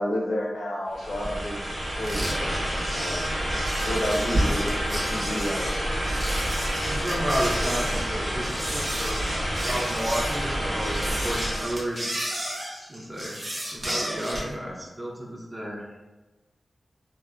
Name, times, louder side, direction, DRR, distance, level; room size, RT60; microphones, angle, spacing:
voice 1, 0.0-1.7 2.0-3.4 3.8-5.7, left 1 dB, 70° left, -2 dB, 0.5 m, -31 dB
sound 1, 0.9-11.8, equal, 85° right, 1.1 m, -29 dB
sound 2, 2.0-14.5, right 1 dB, 50° right, 0.7 m, -33 dB
voice 2, 6.9-12.5 12.7-13.4 13.7-16.0, equal, 20° right, -3 dB, 0.5 m, -32 dB
2.8 x 2.0 x 2.2 m, 1.2 s
cardioid pair, 40°, 0 cm